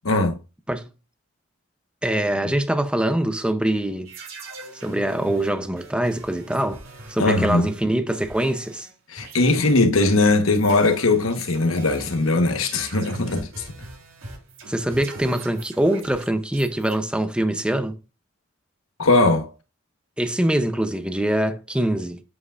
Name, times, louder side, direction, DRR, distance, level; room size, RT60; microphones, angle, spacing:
voice 1, 2.0-4.1 4.7-6.8 7.1-8.9 14.7-18.0 20.2-22.2, right 1 dB, 5° right, 0.5 m, -23 dB
sound 1, 4.0-8.9 9.2-16.9, right 3 dB, 85° right, 3.5 m, -42 dB
voice 2, 7.2-7.7 9.1-13.6 19.0-19.5, left 2 dB, 90° left, 1.2 m, -20 dB
8.2 x 7.7 x 2.4 m
head